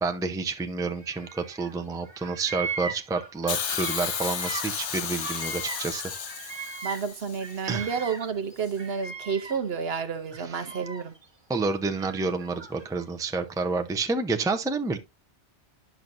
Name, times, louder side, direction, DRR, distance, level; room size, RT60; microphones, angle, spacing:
voice 1, 0.0-6.0 7.7-7.9 10.4-10.7 11.5-15.0, right 3 dB, 5° right, 0.6 m, -29 dB
Bird vocalization bird call bird song, 1.0-1.8 2.0-7.1 7.4-9.8 10.3-11.2 12.0-13.1, right 4 dB, 25° right, 1.2 m, -39 dB
Hiss, 3.5-7.6 8.6-8.7, left 8 dB, 80° left, 1.2 m, -33 dB
voice 2, 6.8-11.1, right 6 dB, 65° right, 1.0 m, -30 dB
10.5 x 6.1 x 2.6 m
omnidirectional pair, 1.2 m